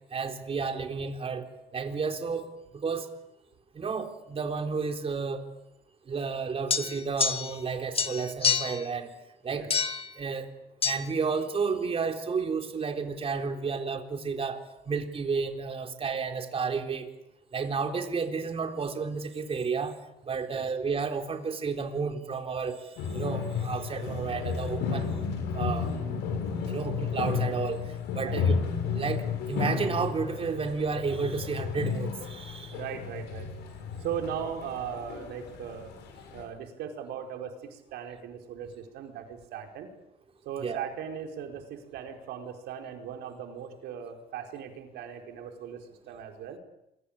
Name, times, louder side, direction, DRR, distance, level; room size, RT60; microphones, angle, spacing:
voice 1, 0.1-1.5 1.7-2.5 2.7-3.1 3.8-5.5 6.1-9.1 9.4-9.7 10.2-10.5 10.8-14.6 14.9-17.1 17.5-19.9 20.3-22.8 23.1-25.1 25.5-25.9 26.7-27.8 28.1-28.6 28.9-32.8 40.6-40.9, right 5 dB, 35° right, 5 dB, 3.8 m, -31 dB
sound 1, 6.7-7.7 7.9-8.8 9.7-10.1 10.8-11.0, left 6 dB, 35° left, 2.2 m, -27 dB
sound 2, 23.0-36.4, left 6 dB, 85° left, 6.8 m, -33 dB
voice 2, 32.7-33.5 34.0-35.9 36.3-39.9 40.4-46.6, right 8 dB, 80° right, 4 dB, 4.8 m, -38 dB
28.0 x 23.0 x 8.9 m, 0.87 s
cardioid pair, 110°, 17 cm